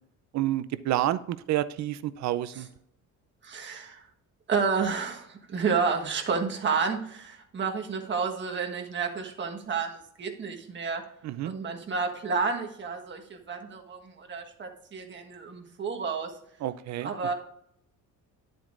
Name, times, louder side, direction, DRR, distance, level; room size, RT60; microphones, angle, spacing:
voice 1, 0.3-2.7 11.2-11.5 16.6-17.1, right 13 dB, 60° right, 14 dB, 0.6 m, -29 dB
voice 2, 3.4-4.0 4.5-11.0 11.4-16.3 17.0-17.3, right 5 dB, 35° right, 2 dB, 1.4 m, -30 dB
11.0 x 7.7 x 2.5 m, 0.72 s
cardioid pair, 145°, 32 cm